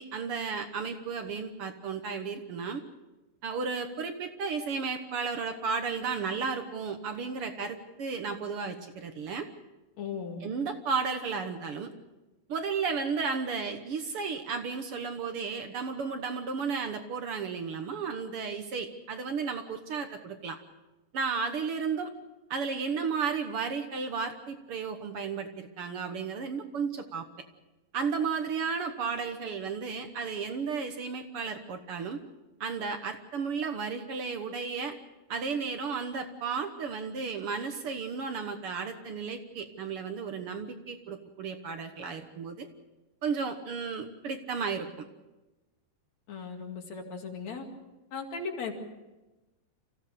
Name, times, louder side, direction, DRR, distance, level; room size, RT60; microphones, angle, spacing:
voice 1, 0.0-2.8 3.4-9.5 10.4-11.9 12.5-20.6 21.1-22.1 22.5-27.2 27.9-32.2 32.6-35.0 35.3-42.7 43.2-45.0, right 5 dB, 60° right, 7 dB, 1.5 m, -33 dB
voice 2, 10.0-10.4 46.3-47.7 48.1-48.7, left 5 dB, 55° left, 3 dB, 3.3 m, -37 dB
26.5 x 15.5 x 6.7 m, 1.1 s
omnidirectional pair, 3.9 m